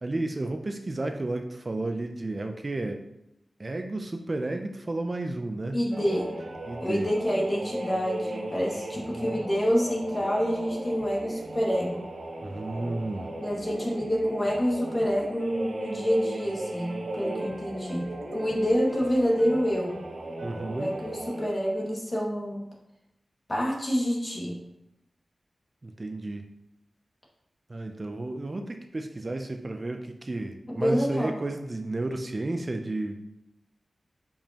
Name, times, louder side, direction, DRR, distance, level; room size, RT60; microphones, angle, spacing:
voice 1, 0.0-3.0 3.6-5.8 6.7-7.1 9.0-9.4 12.4-13.3 20.4-20.9 25.8-26.4 27.7-33.2, right 2 dB, 40° right, 5 dB, 0.6 m, -32 dB
voice 2, 5.7-6.3 6.8-12.1 13.4-20.0 20.6-22.7 23.5-24.6 30.7-31.3, equal, 30° left, -3 dB, 2.1 m, -27 dB
sound 1, 5.9-21.6, right 1 dB, 80° right, 1.1 m, -37 dB
6.8 x 5.4 x 3.0 m, 0.88 s
wide cardioid pair, 65°, 0 cm